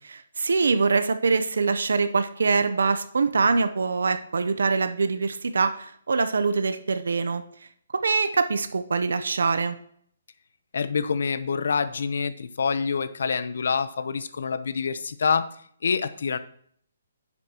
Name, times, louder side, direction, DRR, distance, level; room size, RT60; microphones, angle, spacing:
voice 1, 0.1-7.4 7.9-9.8, right 4 dB, 85° right, 10 dB, 0.7 m, -24 dB
voice 2, 10.7-15.5 15.8-16.4, left 5 dB, 65° left, 13 dB, 0.8 m, -26 dB
10.5 x 8.4 x 3.0 m, 0.62 s
hypercardioid pair, 170°, 0 cm